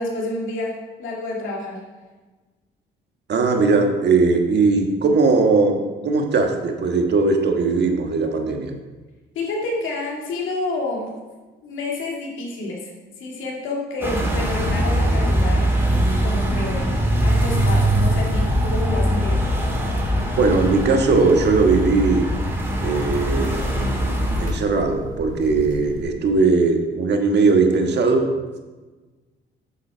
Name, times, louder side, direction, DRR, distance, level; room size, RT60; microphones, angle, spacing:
voice 1, 0.0-1.8 9.4-11.1 11.6-12.9 13.2-15.7 16.2-16.9 17.2-19.4, left 2 dB, 85° left, -1 dB, 2.2 m, -28 dB
voice 2, 3.3-8.7 20.4-22.3 22.8-23.6 24.4-28.3, right 4 dB, 60° right, 4 dB, 1.4 m, -19 dB
sound 1, 14.0-24.5, equal, 10° right, 2.5 m, -21 dB
sound 2, 16.0-26.0, left 1 dB, 20° left, 3.2 m, -36 dB
8.5 x 7.1 x 4.5 m, 1.2 s
cardioid pair, 90°, 20 cm